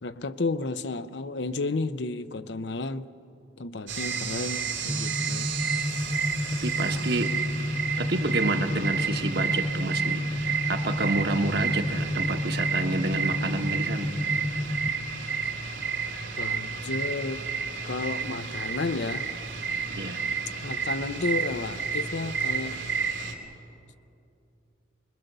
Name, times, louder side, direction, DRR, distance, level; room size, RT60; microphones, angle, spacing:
voice 1, 0.0-3.1 3.6-5.5 16.4-17.5 17.8-19.3 20.6-22.8, left 3 dB, 65° left, 0.7 m, -32 dB
sound 1, 3.9-23.3, right 5 dB, 85° right, 2.9 m, -31 dB
voice 2, 4.0-4.4 6.6-7.3 8.0-14.1 19.9-20.2, right 2 dB, 55° right, 1.3 m, -29 dB
sound 2, 4.9-14.9, left 1 dB, 10° left, 0.6 m, -31 dB
25.0 x 21.5 x 6.8 m
head